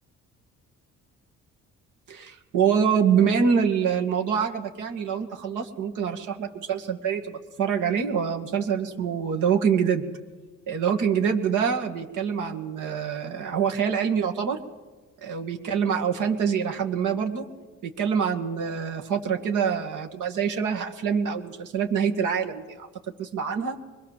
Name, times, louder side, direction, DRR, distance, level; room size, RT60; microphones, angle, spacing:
voice 1, 2.1-10.1 10.7-14.6 15.2-17.4 17.8-22.9 23.2-23.8, right 7 dB, 85° right, 3 dB, 2.3 m, -25 dB
24.0 x 21.5 x 7.6 m, 1.3 s
cardioid pair, 90°, 30 cm